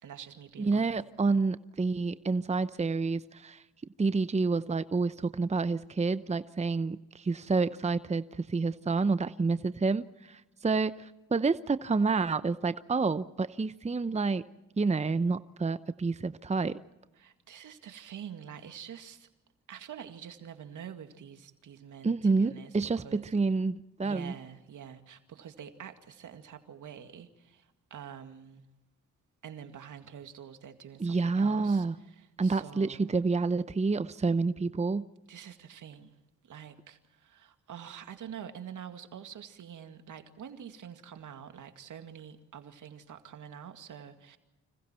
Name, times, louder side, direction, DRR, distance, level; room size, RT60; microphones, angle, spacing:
voice 1, 0.0-1.0 17.2-19.3 19.7-23.3 24.0-28.7 29.4-33.1 35.3-36.2 36.4-44.4, right 8 dB, 70° right, 2.2 m, -46 dB
voice 2, 0.6-3.6 4.0-14.4 14.8-16.8 22.0-24.3 31.0-31.9 32.4-35.1, right 4 dB, 20° right, 0.8 m, -29 dB
29.5 x 26.0 x 4.5 m
supercardioid pair, 55°, 32 cm